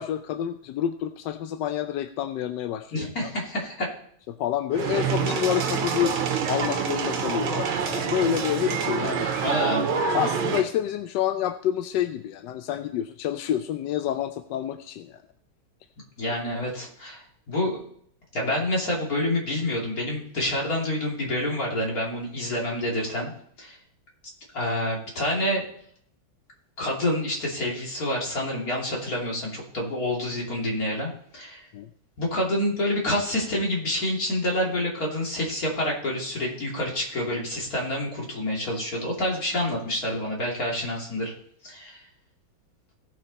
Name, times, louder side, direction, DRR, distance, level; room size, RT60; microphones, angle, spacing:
voice 1, 0.0-3.3 4.3-6.2 6.5-9.3 10.1-15.2 16.3-16.4 18.4-18.5 31.7-31.9, left 10 dB, 75° left, 9 dB, 1.1 m, -28 dB
voice 2, 2.9-3.9 9.4-9.9 16.2-17.2 17.5-17.8 18.3-23.3 23.6-23.8 24.5-25.6 26.8-31.6 32.2-41.3 41.6-42.0, left 1 dB, 45° left, -2 dB, 3.2 m, -28 dB
sound 1, 4.7-10.6, right 6 dB, 85° right, 1.9 m, -26 dB
17.5 x 6.0 x 4.1 m, 0.65 s
omnidirectional pair, 2.2 m